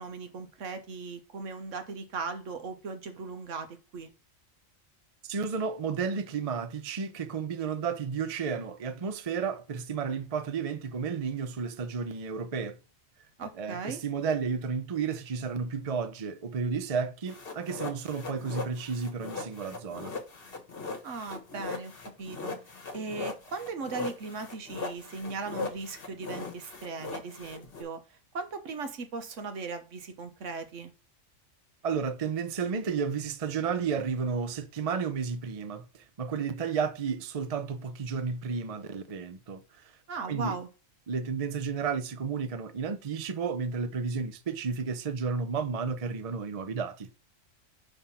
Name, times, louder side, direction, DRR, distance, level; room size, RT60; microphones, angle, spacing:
voice 1, 0.0-4.1 13.4-14.0 21.0-21.9 22.2-22.5 22.9-28.0 28.3-30.9 40.1-40.7, right 4 dB, 70° right, 1.3 m, -38 dB
voice 2, 5.2-12.8 13.5-20.1 31.8-39.9 40.3-40.6 41.1-47.1, right 5 dB, 40° right, 0.5 m, -32 dB
sound 1, 17.3-27.8, left 4 dB, 45° left, 1.4 m, -39 dB
5.7 x 3.5 x 5.6 m
omnidirectional pair, 1.4 m